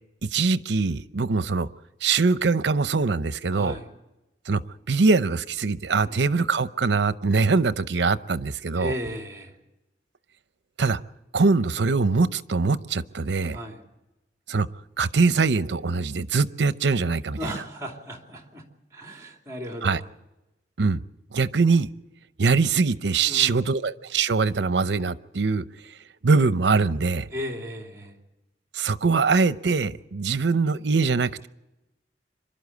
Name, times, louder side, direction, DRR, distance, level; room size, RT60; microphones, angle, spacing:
voice 1, 0.2-1.7 2.0-3.7 4.5-4.6 4.9-8.9 10.8-11.0 11.3-13.6 14.5-14.7 15.0-17.4 19.8-20.0 20.8-21.0 21.3-21.9 22.4-25.6 26.2-27.3 28.7-31.5, right 4 dB, 80° right, 14 dB, 0.7 m, -22 dB
voice 2, 3.5-4.0 6.0-6.3 8.7-9.6 13.5-13.9 17.4-18.6 18.9-20.1 23.3-23.6 27.3-28.2, equal, 20° right, 2 dB, 2.8 m, -35 dB
26.0 x 12.0 x 8.3 m, 0.99 s
head